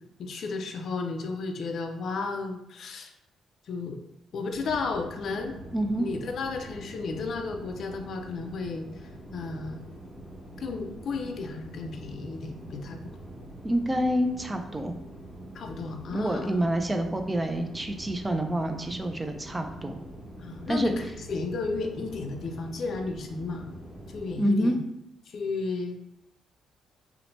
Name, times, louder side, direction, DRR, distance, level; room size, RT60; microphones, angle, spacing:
voice 1, 0.2-3.1 3.7-4.0 4.3-5.6 6.0-9.9 10.6-13.0 15.5-16.5 20.4-23.7 24.1-24.8 25.3-26.0, left 4 dB, 60° left, 4 dB, 0.4 m, -33 dB
sound 1, 4.5-24.3, right 1 dB, ahead, 0.8 m, -44 dB
voice 2, 5.7-6.1 13.6-14.9 16.1-20.0 20.7-20.9 24.4-24.8, right 1 dB, 15° right, 5 dB, 0.3 m, -27 dB
2.8 x 2.1 x 2.9 m, 0.83 s
cardioid pair, 90°, 0 cm